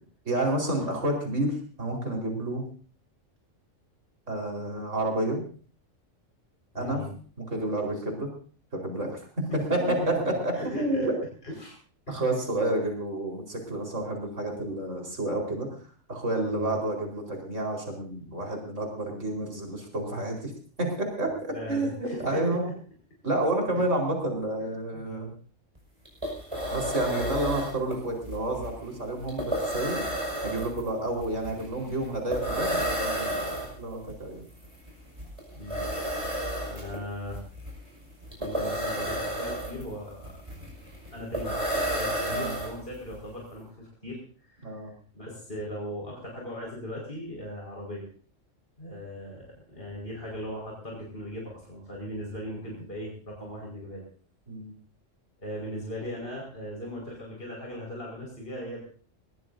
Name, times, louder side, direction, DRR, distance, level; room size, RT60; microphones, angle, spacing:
voice 1, 0.2-2.6 4.3-5.4 6.7-7.1 7.5-8.3 8.7-9.2 9.7-9.8 10.3-11.2 12.1-15.7 16.1-20.5 20.8-22.7 23.2-25.3 26.7-30.0 30.4-34.4 42.3-42.5 44.6-44.9 54.5-54.7, right 1 dB, 75° right, 1 dB, 4.9 m, -30 dB
voice 2, 6.7-7.1 9.5-11.1 11.4-11.7 12.1-12.2 16.5-16.7 21.4-22.7 23.8-23.9 24.9-25.4 35.6-35.9 36.7-37.4 38.4-40.4 41.1-44.8 45.1-48.1 48.8-54.0 55.4-58.8, equal, 45° left, -2 dB, 5.5 m, -38 dB
sound 1, 25.8-25.9 26.1-43.1, equal, 25° right, 5.7 m, -32 dB
22.0 x 17.5 x 2.7 m, 0.42 s
omnidirectional pair, 1.3 m